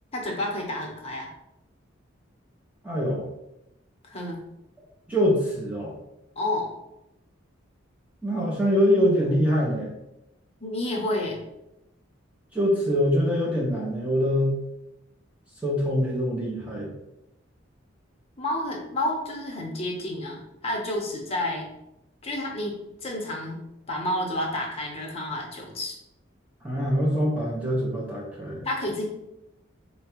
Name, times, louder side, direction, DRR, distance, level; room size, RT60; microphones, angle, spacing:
voice 1, 0.1-1.3 4.0-4.4 6.4-6.7 10.6-11.4 18.4-21.7 22.2-23.6 23.9-26.0 28.6-29.0, left 1 dB, 30° left, 0 dB, 0.8 m, -30 dB
voice 2, 2.8-3.2 5.1-5.9 8.2-9.9 12.5-14.5 15.6-16.9 26.6-28.7, equal, 5° right, -4 dB, 0.6 m, -24 dB
4.0 x 2.2 x 4.4 m, 0.89 s
head